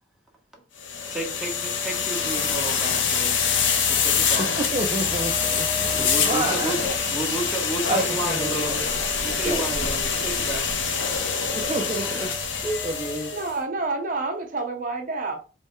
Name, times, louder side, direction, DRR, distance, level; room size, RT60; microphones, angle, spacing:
sound 1, 0.8-13.5, left 6 dB, 85° left, 0.8 m, -25 dB
voice 1, 1.1-3.4 3.9-4.9 5.9-6.8 7.1-8.9 9.2-10.7, right 2 dB, ahead, 1.1 m, -32 dB
voice 2, 4.4-6.8 7.9-8.8 9.4-9.8 11.5-12.3 12.6-13.3, right 2 dB, 30° right, 0.5 m, -29 dB
voice 3, 13.3-15.4, right 3 dB, 45° right, 1.0 m, -28 dB
3.4 x 3.2 x 4.4 m
head